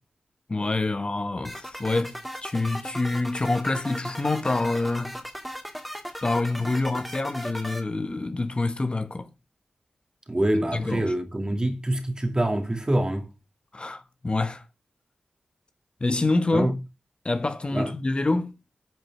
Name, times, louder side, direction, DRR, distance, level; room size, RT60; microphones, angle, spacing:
voice 1, 0.5-5.1 6.2-9.3 10.7-11.1 13.7-14.6 16.0-16.7 17.2-18.5, left 2 dB, 40° left, 1.1 m, -26 dB
sound 1, 1.4-7.8, equal, ahead, 2.5 m, -37 dB
voice 2, 10.3-13.2 16.5-16.7 17.7-17.9, right 1 dB, 25° right, 2.4 m, -25 dB
9.3 x 5.1 x 8.0 m
wide cardioid pair, 65°, 3 cm